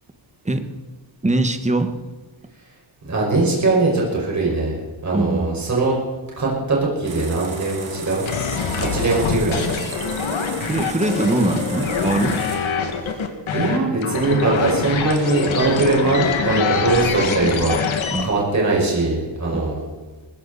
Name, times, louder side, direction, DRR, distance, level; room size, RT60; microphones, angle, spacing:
voice 1, 1.2-1.9 5.1-5.6 10.6-12.4 18.1-18.3 19.5-19.6, right 2 dB, 15° right, 8 dB, 1.4 m, -22 dB
voice 2, 3.0-6.0 6.4-9.6 13.0-13.2 13.5-17.7 18.2-19.8, right 3 dB, 35° right, -3 dB, 5.4 m, -21 dB
sound 1, 7.0-12.6, right 4 dB, 60° right, 3.7 m, -35 dB
sound 2, 8.2-18.3, left 6 dB, 75° left, 2.1 m, -24 dB
20.5 x 15.0 x 4.2 m, 1.3 s
wide cardioid pair, 130°, 48 cm